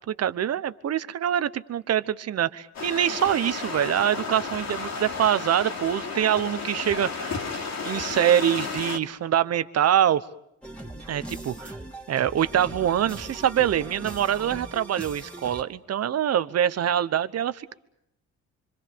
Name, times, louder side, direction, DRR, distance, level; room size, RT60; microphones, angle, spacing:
voice 1, 0.1-7.4 7.8-10.2 11.1-11.7 12.1-17.7, right 10 dB, 55° right, 15 dB, 1.1 m, -24 dB
sound 1, 2.7-9.0, left 4 dB, 65° left, 2.9 m, -33 dB
sound 2, 10.6-15.6, right 2 dB, 5° left, 2.8 m, -40 dB
26.0 x 25.5 x 6.9 m, 0.77 s
cardioid pair, 90°, 30 cm